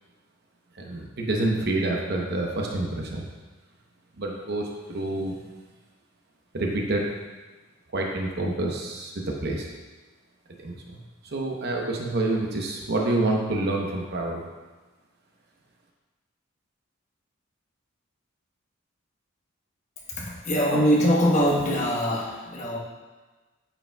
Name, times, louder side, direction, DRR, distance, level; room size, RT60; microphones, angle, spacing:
voice 1, 0.8-3.2 4.2-5.3 6.5-7.1 7.9-9.1 9.4-9.7 10.6-11.0 11.3-14.4, right 2 dB, 50° right, 0 dB, 0.8 m, -27 dB
voice 2, 20.1-22.8, equal, 35° left, -4 dB, 1.1 m, -23 dB
8.7 x 5.0 x 2.2 m, 1.3 s
head